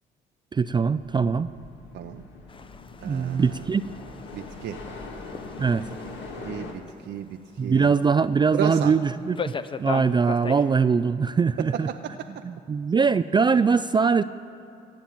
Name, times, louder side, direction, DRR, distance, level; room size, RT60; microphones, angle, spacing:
voice 1, 0.5-1.5 3.0-3.8 5.6-5.9 7.6-11.9 12.4-14.2, right 5 dB, 25° right, 12 dB, 0.3 m, -22 dB
sound 1, 0.7-6.7, left 3 dB, 70° left, 2.1 m, -41 dB
voice 2, 1.9-2.2 3.0-3.7 4.3-4.8 6.4-7.9 8.5-8.9 11.9-12.4, right 10 dB, 65° right, 6 dB, 0.6 m, -34 dB
sound 2, 2.5-6.6 6.9-7.0 7.6-7.7 8.0-8.1 9.4-10.7, left 5 dB, 25° left, 0.6 m, -37 dB
15.0 x 7.0 x 9.2 m, 2.7 s
supercardioid pair, 70°, 20 cm